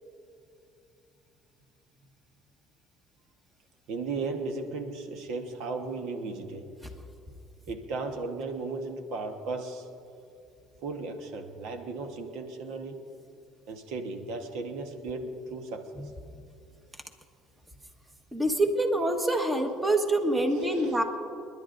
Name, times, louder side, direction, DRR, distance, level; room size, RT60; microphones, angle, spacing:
voice 1, 3.9-6.7 7.7-9.9 10.8-13.0 13.7-16.1 20.5-21.0, right 3 dB, 75° right, 5 dB, 1.2 m, -36 dB
voice 2, 18.3-21.0, right 1 dB, 15° right, 4 dB, 1.4 m, -25 dB
29.5 x 11.0 x 2.6 m, 2.6 s
cardioid pair, 105°, 0 cm